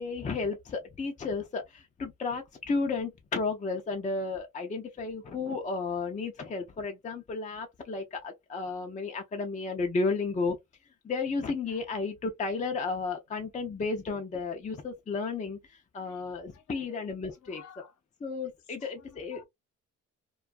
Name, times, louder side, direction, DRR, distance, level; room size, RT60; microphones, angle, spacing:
voice 1, 0.0-10.6 11.0-17.6 18.2-19.4, left 4 dB, 25° left, 0.5 m, -33 dB
voice 2, 16.5-17.0 17.4-18.0 18.8-19.4, left 8 dB, 70° left, 0.9 m, -54 dB
2.4 x 2.3 x 2.4 m
cardioid pair, 90°, 30 cm